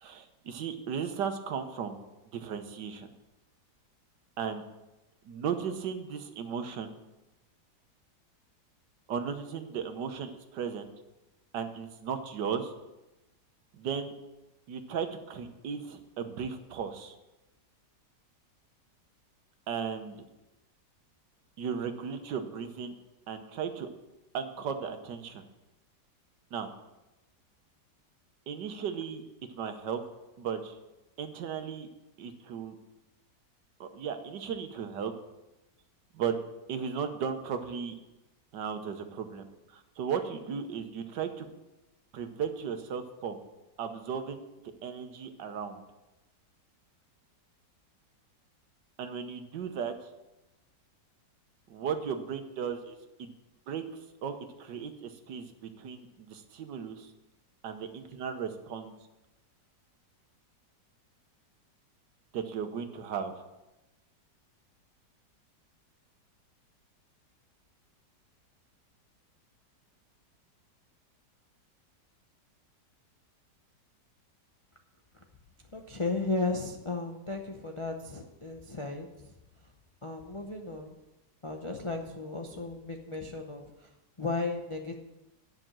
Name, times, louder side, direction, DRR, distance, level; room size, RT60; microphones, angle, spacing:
voice 1, 0.0-2.0 2.3-3.1 4.4-4.6 5.2-6.9 9.1-10.9 11.5-12.7 13.7-14.1 14.7-17.1 19.7-20.2 21.6-22.9 23.3-23.9 24.3-25.4 26.5-26.7 28.5-29.2 29.6-30.0 30.4-30.8 31.2-31.9 32.2-32.8 33.8-35.1 36.1-36.4 36.7-37.9 38.5-41.5 42.1-43.4 43.8-44.4 44.8-45.8 49.0-49.9 51.7-53.3 53.7-53.8 54.2-57.1 57.6-58.9 62.3-63.3, right 7 dB, 75° right, 7 dB, 1.6 m, -36 dB
voice 2, 75.7-79.1 80.0-80.9 81.4-83.7 84.2-84.9, left 3 dB, 45° left, 2 dB, 0.4 m, -34 dB
10.0 x 6.0 x 7.4 m, 0.99 s
omnidirectional pair, 1.9 m